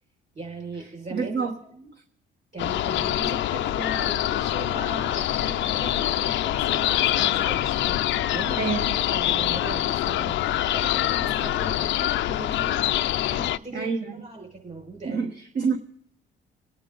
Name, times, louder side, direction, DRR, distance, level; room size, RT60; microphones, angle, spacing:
voice 1, 0.3-1.9 2.5-15.3, right 2 dB, 35° right, 5.6 m, -39 dB
voice 2, 1.1-1.6 8.6-8.9 13.7-14.2 15.0-15.8, right 5 dB, 55° right, 1.3 m, -27 dB
sound 1, 2.6-13.6, left 13 dB, 70° left, 0.5 m, -25 dB
27.0 x 9.3 x 3.9 m
cardioid pair, 90°, 20 cm